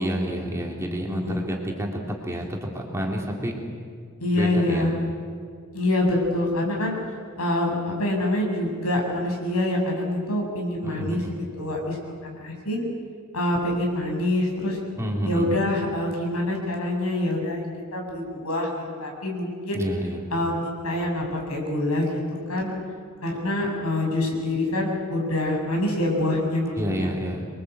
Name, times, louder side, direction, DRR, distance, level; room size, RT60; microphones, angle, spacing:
voice 1, 0.0-3.5 4.3-5.0 10.8-11.4 15.0-15.6 19.7-20.3 26.8-27.5, equal, 15° right, -1 dB, 3.2 m, -29 dB
voice 2, 4.2-4.9 5.7-11.2 11.6-12.8 13.3-14.8 15.2-17.7 17.9-19.8 20.3-22.2 22.5-22.7 23.2-27.1, left 1 dB, 80° left, 0 dB, 7.2 m, -26 dB
27.5 x 23.0 x 8.1 m, 2.2 s
head